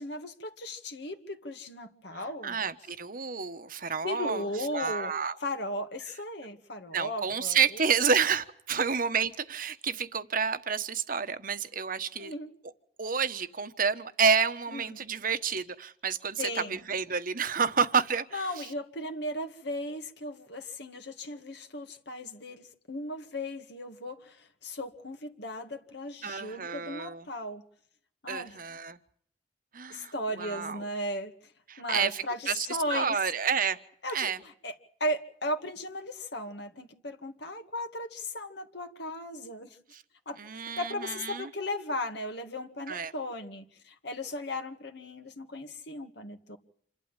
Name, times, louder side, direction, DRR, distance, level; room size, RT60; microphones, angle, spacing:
voice 1, 0.0-2.6 4.0-5.1 5.4-7.8 12.2-12.5 14.7-15.0 16.4-16.8 18.3-27.6 28.2-28.5 29.9-31.3 31.8-33.2 34.0-34.7 35.0-39.8 40.3-46.6, left 1 dB, 65° left, 5 dB, 2.1 m, -36 dB
voice 2, 2.1-4.5 4.7-5.3 6.9-12.3 13.0-18.6 26.2-27.2 28.3-29.0 29.7-30.8 31.7-33.8 34.1-34.4 39.9-40.0 40.4-41.5 42.9-43.1, right 6 dB, 50° right, 10 dB, 1.3 m, -29 dB
28.0 x 12.0 x 9.1 m, 0.64 s
head